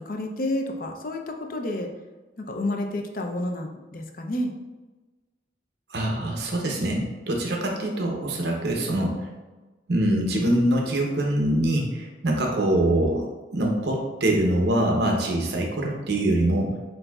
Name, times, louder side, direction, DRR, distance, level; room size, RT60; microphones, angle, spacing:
voice 1, 0.0-1.9 2.4-4.5, left 1 dB, 50° left, 3 dB, 0.5 m, -30 dB
voice 2, 5.9-9.1 9.9-13.2 13.5-16.7, right 1 dB, 65° right, 0 dB, 0.7 m, -24 dB
7.7 x 2.6 x 2.3 m, 1.2 s
head